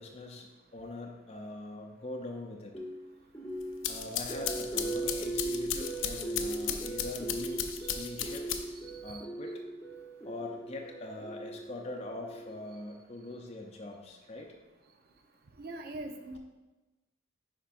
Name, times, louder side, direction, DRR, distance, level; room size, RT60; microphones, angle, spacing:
voice 1, 0.0-2.7 3.8-8.5 9.0-9.6 10.2-14.5, left 2 dB, 30° left, 0 dB, 0.6 m, -42 dB
sound 1, 2.7-12.8, right 2 dB, 15° left, 1.0 m, -39 dB
sound 2, 3.6-8.9, left 9 dB, 75° left, 0.5 m, -36 dB
voice 2, 7.8-8.1 8.8-9.2 15.6-16.4, right 2 dB, 50° right, 5 dB, 0.6 m, -43 dB
10.0 x 4.5 x 2.5 m, 1.1 s
head